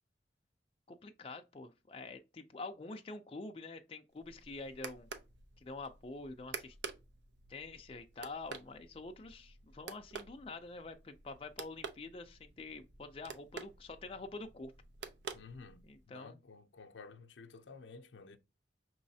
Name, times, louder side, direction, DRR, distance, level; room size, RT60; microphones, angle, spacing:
voice 1, 0.9-5.1 5.6-6.8 7.5-14.7 15.8-16.4, left 3 dB, 30° left, 0.4 m, -47 dB
sound 1, 4.1-16.1, right 5 dB, 75° right, 0.6 m, -50 dB
voice 2, 15.3-18.4, left 4 dB, 85° left, 0.5 m, -53 dB
5.5 x 3.1 x 2.7 m
head